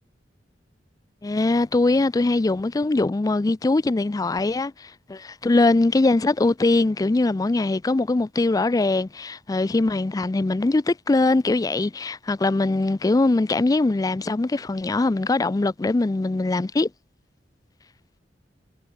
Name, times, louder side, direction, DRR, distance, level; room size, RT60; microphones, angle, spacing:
voice 1, 1.2-16.9, left 2 dB, 20° left, 0.4 m, -22 dB
head